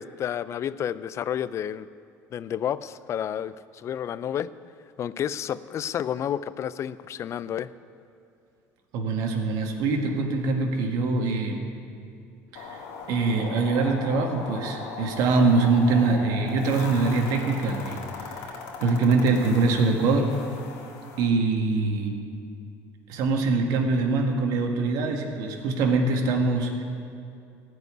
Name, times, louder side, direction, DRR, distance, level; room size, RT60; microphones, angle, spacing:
voice 1, 0.0-1.9 2.3-4.5 5.0-7.7, left 9 dB, 45° left, 16 dB, 0.4 m, -30 dB
voice 2, 8.9-11.6 12.5-12.8 13.1-20.3 21.2-22.1 23.1-26.8, right 3 dB, 70° right, 2 dB, 1.8 m, -24 dB
sound 1, 12.6-21.3, left 5 dB, 80° left, 1.8 m, -39 dB
15.5 x 5.4 x 9.7 m, 2.5 s
supercardioid pair, 95°, 7 cm